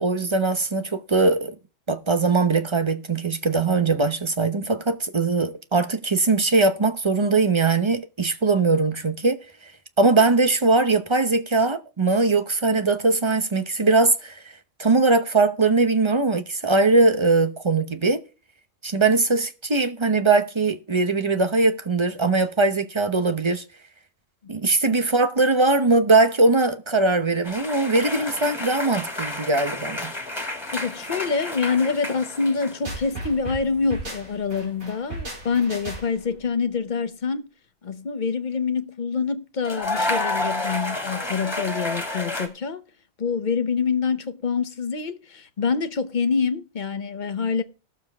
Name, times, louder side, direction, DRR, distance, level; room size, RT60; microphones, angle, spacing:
voice 1, 0.0-1.6 1.9-9.4 10.0-14.4 14.8-18.2 18.8-23.6 24.5-30.1, right 3 dB, 25° right, 0.8 m, -21 dB
sound 1, 27.4-32.9 33.2-33.7 35.5-35.8 39.6-42.5, left 2 dB, 20° left, 2.2 m, -30 dB
voice 2, 30.7-37.5 37.8-42.8 43.2-47.6, left 5 dB, 40° left, 1.0 m, -26 dB
sound 2, 32.8-36.3, right 2 dB, 85° right, 5.4 m, -35 dB
19.0 x 7.2 x 3.5 m
omnidirectional pair, 1.4 m